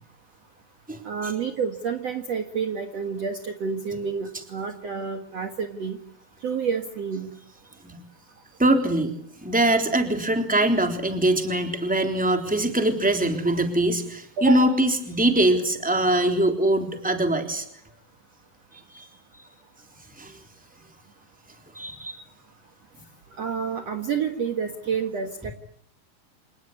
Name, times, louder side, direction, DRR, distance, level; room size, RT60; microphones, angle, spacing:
voice 1, 1.0-6.0 6.4-7.3 14.4-14.8 23.4-25.5, right 6 dB, 50° right, 6 dB, 2.4 m, -29 dB
voice 2, 8.6-9.1 9.4-17.6 18.9-19.1 20.2-20.4 21.7-22.2, right 1 dB, ahead, 5 dB, 3.1 m, -22 dB
27.5 x 20.0 x 9.8 m, 0.66 s
omnidirectional pair, 4.2 m